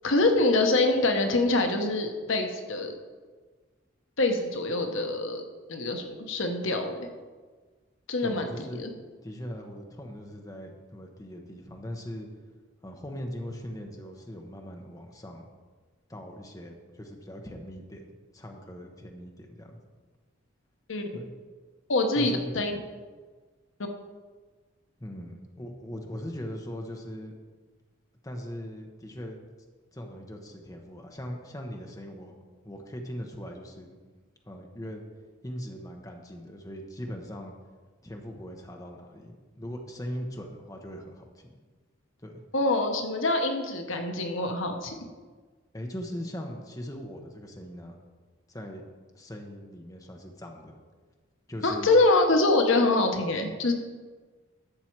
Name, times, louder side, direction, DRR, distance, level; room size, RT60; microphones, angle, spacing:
voice 1, 0.0-2.9 4.2-5.4 5.7-7.1 8.1-8.5 8.8-8.9 20.9-21.0 21.9-22.7 42.5-45.0 51.6-53.7, left 2 dB, 70° left, 5 dB, 1.0 m, -25 dB
voice 2, 8.2-8.8 9.2-12.3 12.8-15.5 16.1-19.8 21.1-21.3 22.1-22.5 25.0-27.3 28.2-29.4 29.9-32.3 32.6-34.0 34.5-35.0 35.4-37.5 38.0-41.6 42.2-42.3 45.7-48.0 48.5-48.8 49.1-50.7 51.5-51.9, equal, 15° left, 2 dB, 0.9 m, -40 dB
11.5 x 7.2 x 4.6 m, 1.4 s
head